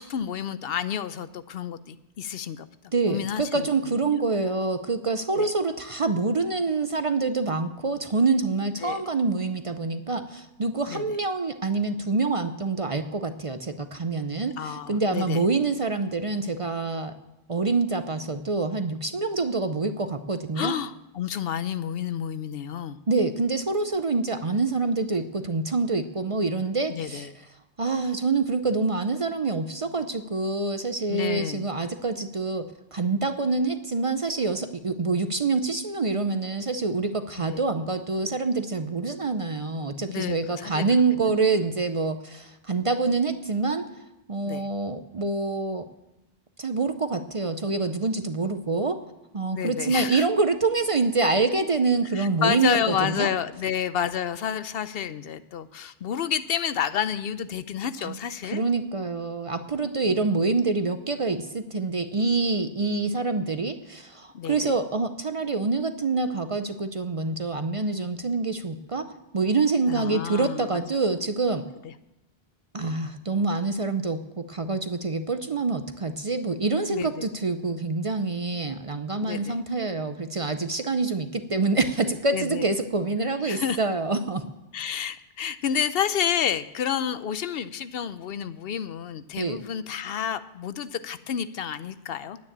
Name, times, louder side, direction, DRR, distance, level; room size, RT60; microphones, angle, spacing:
voice 1, 0.0-2.7 3.1-4.0 5.4-5.5 8.8-9.0 10.9-11.2 14.6-15.4 20.6-23.0 26.9-27.3 31.1-31.7 37.4-37.6 40.1-40.8 44.4-44.7 49.5-50.3 52.1-58.6 60.0-60.2 64.3-64.8 69.9-70.8 71.8-71.9 76.9-77.3 79.2-79.6 82.3-82.7 83.4-83.8 84.7-92.4, left 8 dB, 70° left, 14 dB, 0.8 m, -30 dB
voice 2, 2.9-17.1 17.5-20.7 23.1-27.3 27.8-43.9 44.3-45.9 46.6-49.0 49.3-53.3 58.0-58.2 58.4-69.1 69.3-71.6 72.7-84.4 89.4-89.6, right 3 dB, 40° right, 9 dB, 0.6 m, -26 dB
10.0 x 9.4 x 8.6 m, 0.93 s
omnidirectional pair, 1.0 m